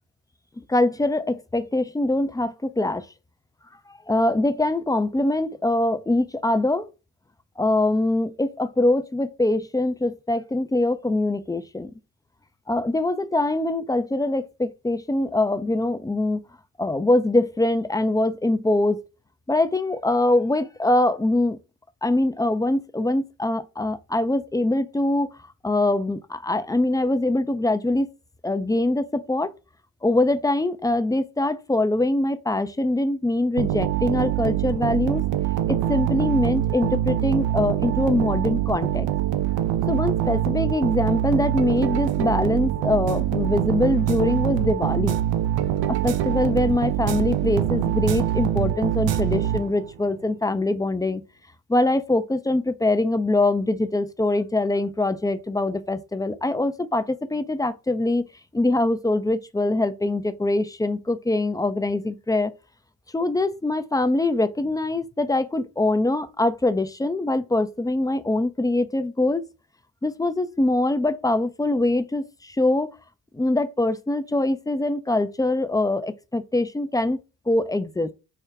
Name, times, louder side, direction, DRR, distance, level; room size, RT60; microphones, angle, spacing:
voice 1, 0.7-3.1 3.9-6.9 7.6-11.9 12.7-16.4 16.8-19.0 19.5-21.6 22.0-25.3 25.6-28.1 28.4-29.5 30.0-35.2 35.7-39.1 39.9-45.2 45.9-51.2 51.7-58.2 58.5-62.5 63.1-69.4 70.0-72.9 73.3-77.2 77.5-78.1, left 2 dB, 10° left, 0.4 m, -23 dB
sound 1, 33.6-50.0, right 12 dB, 80° right, 0.6 m, -24 dB
4.7 x 2.1 x 3.5 m
supercardioid pair, 50°, 45 cm